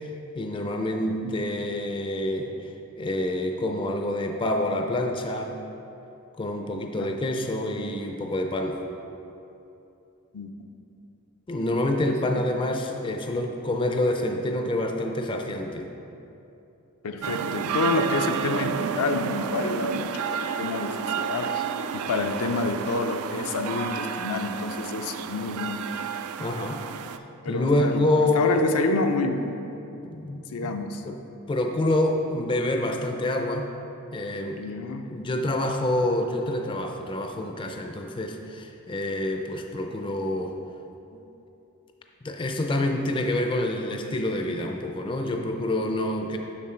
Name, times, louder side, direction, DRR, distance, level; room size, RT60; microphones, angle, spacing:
voice 1, 0.3-2.7 3.0-5.6 6.4-8.8 11.5-15.9 26.4-26.8 27.5-28.6 30.0-30.7 31.0-31.2 31.5-33.8 34.1-34.6 35.1-40.6 41.1-41.2 42.2-46.4, left 1 dB, 20° left, 4 dB, 0.4 m, -27 dB
voice 2, 12.1-12.4 17.0-21.6 21.9-25.8 27.4-28.1 28.3-29.6 30.5-31.0 34.6-35.2, left 3 dB, 80° left, 6 dB, 0.5 m, -28 dB
sound 1, 17.2-27.2, right 7 dB, 75° right, 0.3 m, -31 dB
7.4 x 6.0 x 4.4 m, 2.9 s
head